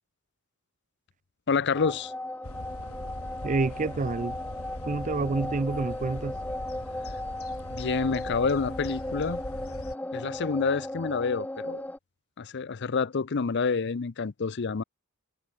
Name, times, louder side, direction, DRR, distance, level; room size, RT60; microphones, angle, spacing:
voice 1, 1.5-2.1 7.7-9.4 10.1-11.8 12.4-14.8, left 5 dB, 50° left, 0.6 m, -28 dB
sound 1, 1.7-12.0, left 1 dB, 5° left, 0.7 m, -36 dB
sound 2, 2.4-10.0, left 1 dB, 75° left, 3.9 m, -41 dB
voice 2, 3.4-4.4 4.9-6.4, right 3 dB, 35° right, 0.5 m, -28 dB
head